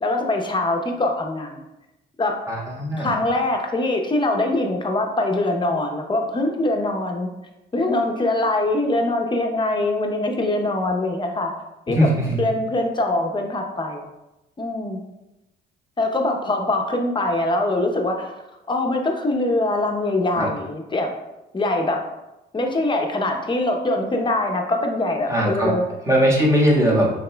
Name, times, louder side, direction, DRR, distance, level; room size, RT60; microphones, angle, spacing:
voice 1, 0.0-1.6 2.2-2.4 3.0-7.3 7.7-11.5 11.9-12.1 12.4-14.0 14.6-15.0 16.0-18.3 18.7-21.1 21.5-22.0 22.5-25.8, left 2 dB, 25° left, 2 dB, 0.8 m, -23 dB
voice 2, 2.5-3.2 11.9-12.4 20.4-20.5 25.3-25.7 26.1-27.1, equal, 15° right, -4 dB, 1.5 m, -19 dB
6.5 x 3.5 x 2.3 m, 0.98 s
cardioid pair, 90°, 20 cm